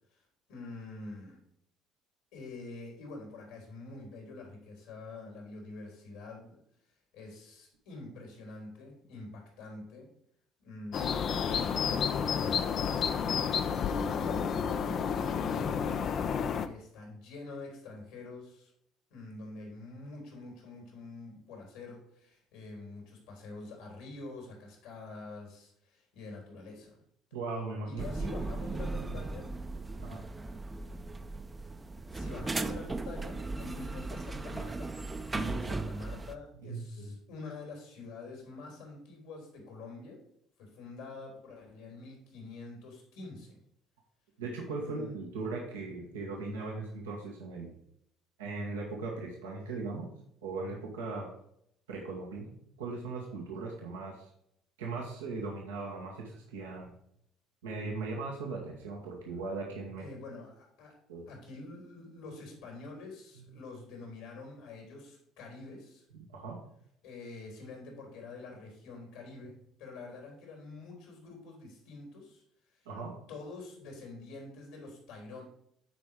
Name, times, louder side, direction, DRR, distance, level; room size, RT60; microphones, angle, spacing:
voice 1, 0.5-1.4 2.3-6.6 7.1-10.1 10.6-13.0 14.1-15.9 16.6-18.7 19.1-27.0 27.9-29.5 32.1-34.9 35.5-40.2 40.6-43.6 44.8-45.1 46.4-47.0 60.0-60.9 61.3-66.0 67.0-72.4 72.7-72.8 73.3-75.4, left 3 dB, 75° left, 0 dB, 3.5 m, -46 dB
sound 1, 10.9-16.7, left 7 dB, 55° left, 0.6 m, -30 dB
voice 2, 27.3-28.3 28.8-29.2 30.0-30.2 35.3-35.6 36.5-37.1 44.4-47.7 48.4-50.1 50.4-51.3 51.9-54.3 54.8-56.9 57.6-60.1 61.1-61.3 63.4-63.5 66.1-66.7 72.8-73.1, right 3 dB, 85° right, -1 dB, 1.5 m, -39 dB
sound 2, 28.0-36.3, right 3 dB, 20° right, 0.7 m, -37 dB
9.1 x 4.7 x 5.0 m, 0.72 s
hypercardioid pair, 60°, 0 cm